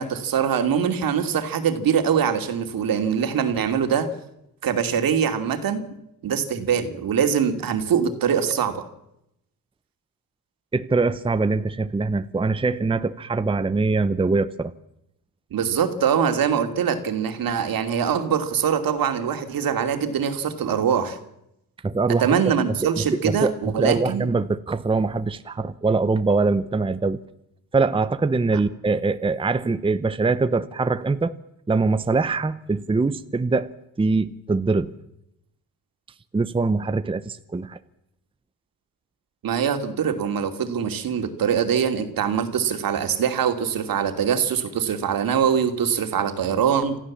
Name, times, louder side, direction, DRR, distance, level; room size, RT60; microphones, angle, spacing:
voice 1, 0.0-4.1 4.6-5.8 6.2-8.9 15.5-21.2 22.2-24.3 28.5-28.6 39.4-47.0, right 7 dB, 70° right, 7 dB, 2.6 m, -23 dB
voice 2, 10.7-14.7 21.8-22.3 23.2-27.2 27.7-31.3 31.7-33.7 34.0-34.9 36.3-37.8, right 3 dB, 15° right, 12 dB, 0.8 m, -23 dB
26.5 x 15.0 x 7.4 m, 0.82 s
cardioid pair, 105°, 36 cm